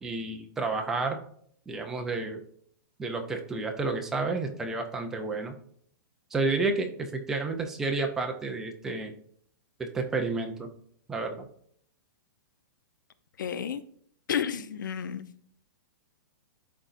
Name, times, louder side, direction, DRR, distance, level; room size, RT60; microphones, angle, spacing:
voice 1, 0.0-1.2 1.7-2.4 3.0-5.6 6.3-9.1 9.8-10.7 11.1-11.5, right 3 dB, 5° right, 0.4 m, -30 dB
voice 2, 13.4-13.8 14.3-15.3, left 8 dB, 70° left, 0.6 m, -31 dB
11.0 x 3.9 x 2.5 m
hypercardioid pair, 180°, 11 cm